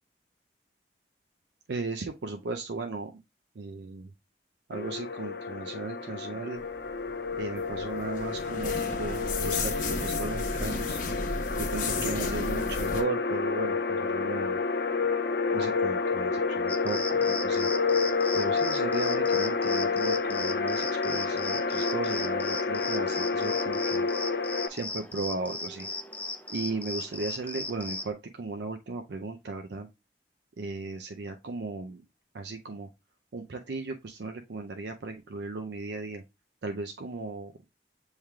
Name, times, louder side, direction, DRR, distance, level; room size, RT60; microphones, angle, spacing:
voice 1, 1.7-3.1 3.6-4.1 4.7-6.6 7.4-11.0 11.6-14.6 15.5-17.7 18.3-24.1 24.7-25.9 26.5-29.9 30.6-32.0 32.3-32.9 33.3-36.2 36.6-37.5, right 3 dB, 75° right, 5 dB, 0.5 m, -36 dB
sound 1, 4.7-24.7, left 4 dB, 60° left, 0.5 m, -29 dB
sound 2, 7.1-13.0, left 3 dB, 45° left, 0.9 m, -34 dB
sound 3, 16.7-28.1, left 2 dB, 10° left, 0.4 m, -37 dB
7.1 x 3.2 x 2.3 m, 0.23 s
head